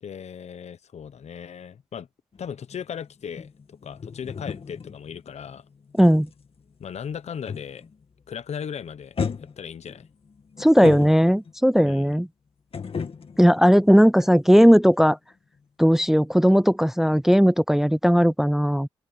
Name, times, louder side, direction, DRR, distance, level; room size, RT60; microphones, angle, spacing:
voice 1, 0.0-2.1 2.4-5.6 6.8-7.8 8.3-9.2 9.6-10.1 11.8-12.2, left 7 dB, 70° left, 1.1 m, -37 dB
sound 1, 2.3-8.0 8.3-8.7 9.2-11.7 12.7-14.7 14.9-15.1, left 6 dB, 55° left, 2.3 m, -35 dB
voice 2, 10.6-12.3 13.4-15.2 15.8-18.9, equal, 5° right, 0.4 m, -17 dB
open air
cardioid pair, 60°, 12 cm